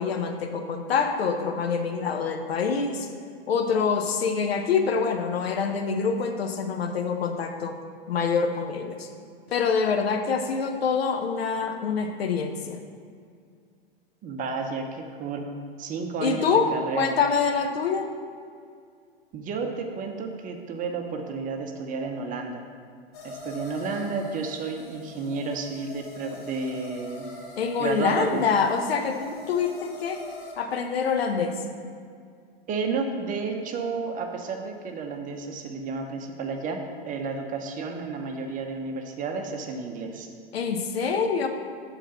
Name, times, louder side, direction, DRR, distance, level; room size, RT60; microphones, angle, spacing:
voice 1, 0.0-3.1 3.5-7.8 8.1-9.1 9.5-12.8 16.2-18.1 27.6-30.2 30.6-31.6 40.5-41.5, left 5 dB, 80° left, 5 dB, 0.8 m, -25 dB
voice 2, 14.2-17.2 19.3-22.6 23.2-27.3 27.8-28.5 32.7-40.3, right 4 dB, 25° right, 4 dB, 0.7 m, -32 dB
sound 1, 23.1-30.5, left 2 dB, 55° left, 1.4 m, -43 dB
7.1 x 3.9 x 5.7 m, 2.2 s
hypercardioid pair, 110°, 30 cm